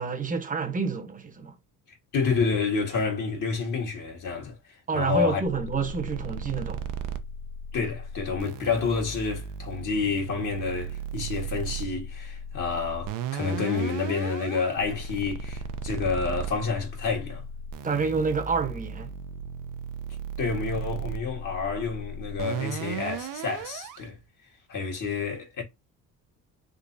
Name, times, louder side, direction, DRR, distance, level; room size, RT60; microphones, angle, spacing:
voice 1, 0.0-1.6 4.9-6.9 17.8-19.1, right 5 dB, 25° right, 0.9 m, -28 dB
voice 2, 2.1-4.6 4.9-5.4 7.7-17.4 20.4-24.2 24.7-25.6, left 5 dB, 60° left, 1.6 m, -29 dB
sound 1, 5.5-24.0, right 5 dB, 65° right, 0.6 m, -36 dB
3.7 x 2.7 x 2.6 m
supercardioid pair, 75°, 35 cm